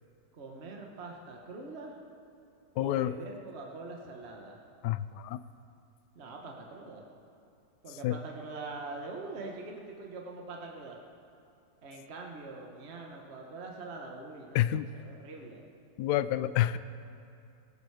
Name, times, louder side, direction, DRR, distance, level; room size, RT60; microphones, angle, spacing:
voice 1, 0.3-2.0 2.8-4.6 6.1-7.1 7.8-11.0 11.8-15.6, right 3 dB, 40° right, 0 dB, 1.6 m, -43 dB
voice 2, 2.8-3.2 4.8-5.4 8.0-8.2 14.5-14.9 16.0-16.8, left 13 dB, 75° left, 14 dB, 1.1 m, -28 dB
17.5 x 16.5 x 4.9 m, 2.6 s
omnidirectional pair, 1.9 m